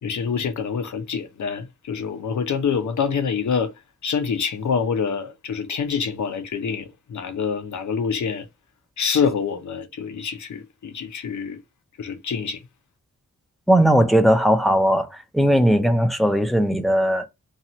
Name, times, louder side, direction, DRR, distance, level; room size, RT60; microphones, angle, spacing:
voice 1, 0.0-3.7 4.0-8.4 9.0-11.6 12.0-12.6, left 6 dB, 65° left, 0.6 m, -26 dB
voice 2, 13.7-17.3, equal, ahead, 0.5 m, -18 dB
2.8 x 2.3 x 2.9 m
wide cardioid pair, 80°, 31 cm